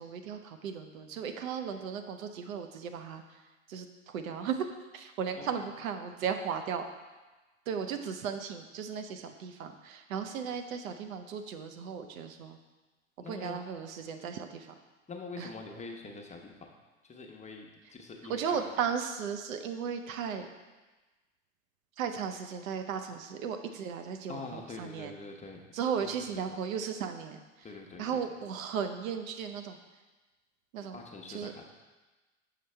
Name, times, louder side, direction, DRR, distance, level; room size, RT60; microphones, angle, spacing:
voice 1, 0.0-3.4 3.7-4.7 4.9-6.9 7.7-12.6 13.3-14.7 15.4-15.5 18.3-20.5 22.0-25.2 25.7-27.7 28.0-29.8 30.7-31.0 31.3-31.5, right 7 dB, 80° right, 7 dB, 0.7 m, -36 dB
voice 2, 13.2-13.6 15.1-16.7 17.0-18.6 24.3-25.6 26.3-26.4 27.6-28.2 30.9-31.6, left 3 dB, 15° left, 1 dB, 0.9 m, -44 dB
6.5 x 5.7 x 3.3 m, 1.2 s
hypercardioid pair, 85°, 40 cm